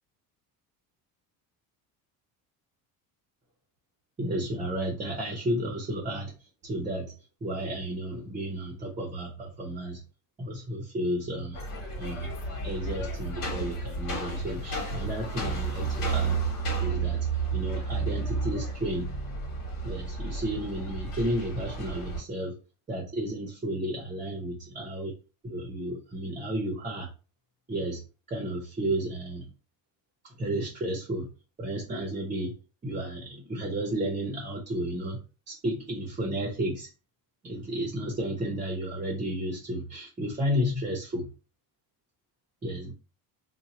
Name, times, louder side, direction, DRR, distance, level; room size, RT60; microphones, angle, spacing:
voice 1, 4.2-6.3 6.6-7.1 7.4-10.0 10.4-11.6 12.0-12.3 12.6-16.3 16.8-17.2 17.5-19.2 19.8-22.6 22.9-25.1 25.4-27.1 27.7-28.0 28.3-29.5 30.2-31.3 31.6-32.6 32.8-36.9 37.4-41.3 42.6-42.9, right 1 dB, 20° right, 0 dB, 0.8 m, -32 dB
sound 1, 11.5-22.2, right 4 dB, 60° left, 1.5 m, -32 dB
2.7 x 2.2 x 4.1 m, 0.33 s
cardioid pair, 130°, 38 cm